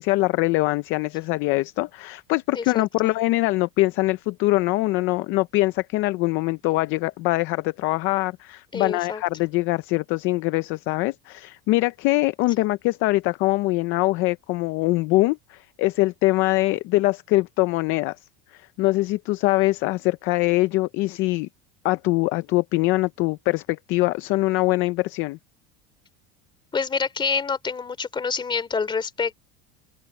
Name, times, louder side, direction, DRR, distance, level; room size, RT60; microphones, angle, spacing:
voice 1, 0.0-18.2 18.5-21.5 21.8-25.4, left 20 dB, 40° left, 0.4 m, -23 dB
voice 2, 2.5-3.1 8.7-9.2 12.6-12.7 26.7-29.3, left 5 dB, 15° left, 2.9 m, -27 dB
open air
cardioid pair, 175°, 33 cm